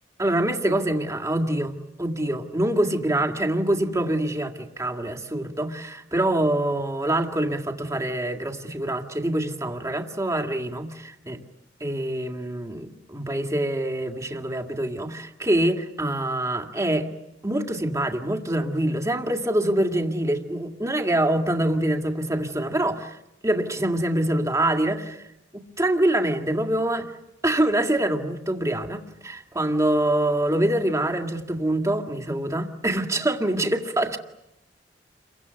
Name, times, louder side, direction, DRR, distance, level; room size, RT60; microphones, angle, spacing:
voice 1, 0.2-1.7 2.0-11.4 11.8-17.1 17.4-23.2 23.4-25.2 25.5-27.1 27.4-34.2, right 1 dB, 15° right, 2.1 m, -25 dB
29.5 x 23.5 x 8.1 m
head